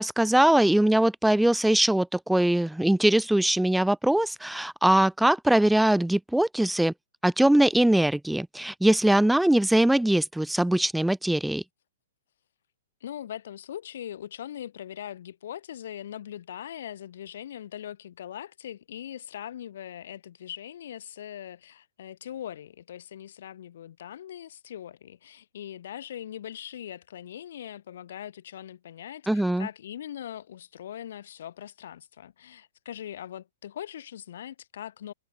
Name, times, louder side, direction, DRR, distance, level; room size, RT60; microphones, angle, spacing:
voice 1, 0.0-6.9 7.2-11.6 29.3-29.7, right 1 dB, ahead, 2.0 m, -22 dB
voice 2, 13.0-35.1, left 10 dB, 60° left, 7.4 m, -41 dB
figure-of-eight pair, 115°, 0 cm